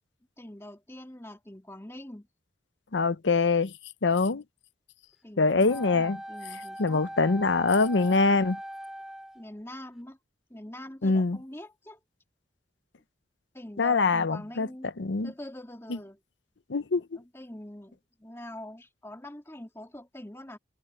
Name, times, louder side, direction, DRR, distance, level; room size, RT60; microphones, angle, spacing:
voice 1, 0.4-2.3 5.2-7.0 9.3-10.2 10.5-12.0 13.5-14.9 15.2-16.2 17.1-20.6, left 1 dB, 15° left, 2.3 m, -44 dB
voice 2, 2.9-3.7 4.0-4.4 5.4-6.2 6.8-8.6 11.0-11.4 13.8-14.7 15.0-15.3 16.7-17.0, left 3 dB, 85° left, 0.8 m, -24 dB
Wind instrument woodwind instrument, 5.7-9.5, equal, 5° right, 4.7 m, -40 dB
head